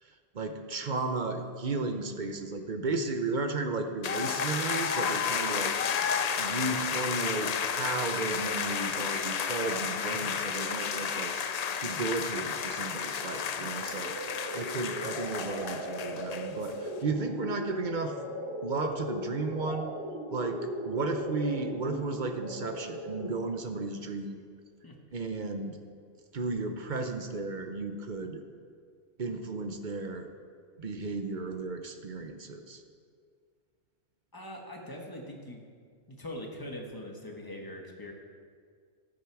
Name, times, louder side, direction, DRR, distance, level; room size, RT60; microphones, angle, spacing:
voice 1, 0.0-5.8 6.4-11.3 11.8-14.2 14.5-18.2 18.6-19.9 20.3-24.4 25.1-25.8 26.3-28.4 29.2-30.3 30.8-32.8, right 3 dB, 45° right, 6 dB, 0.8 m, -34 dB
sound 1, 4.0-16.7, left 7 dB, 55° left, 0.4 m, -32 dB
sound 2, 13.6-23.5, equal, 20° right, 2.0 m, -38 dB
voice 2, 34.3-35.6 36.1-38.1, left 1 dB, 20° left, 0 dB, 1.4 m, -42 dB
13.5 x 8.7 x 4.7 m, 2.1 s
omnidirectional pair, 1.2 m